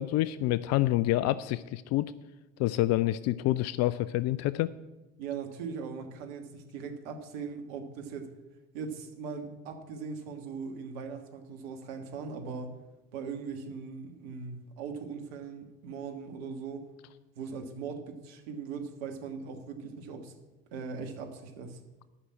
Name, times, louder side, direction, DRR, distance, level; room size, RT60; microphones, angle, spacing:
voice 1, 0.0-2.1 2.6-4.7, left 15 dB, 55° left, 16 dB, 0.5 m, -27 dB
voice 2, 5.2-8.3 8.7-12.8 13.1-16.9 17.3-20.3 20.7-21.8, right 5 dB, 75° right, 5 dB, 1.6 m, -40 dB
9.9 x 6.2 x 8.6 m, 1.1 s
hypercardioid pair, 60°, 31 cm